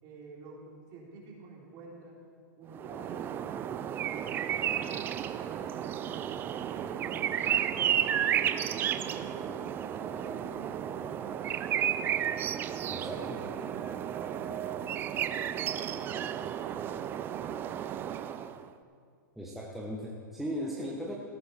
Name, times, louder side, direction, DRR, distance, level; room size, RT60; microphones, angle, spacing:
voice 1, 0.0-2.2 2.6-6.2 6.5-7.9 8.7-9.6 9.9-12.3 13.0-18.6, right 3 dB, 35° right, -3 dB, 3.6 m, -49 dB
sound 1, 2.7-18.6, right 10 dB, 20° right, 0.4 m, -33 dB
voice 2, 12.9-13.4 19.4-21.1, equal, ahead, -4 dB, 1.2 m, -37 dB
18.0 x 9.5 x 4.4 m, 2.2 s
hypercardioid pair, 135°, 10 cm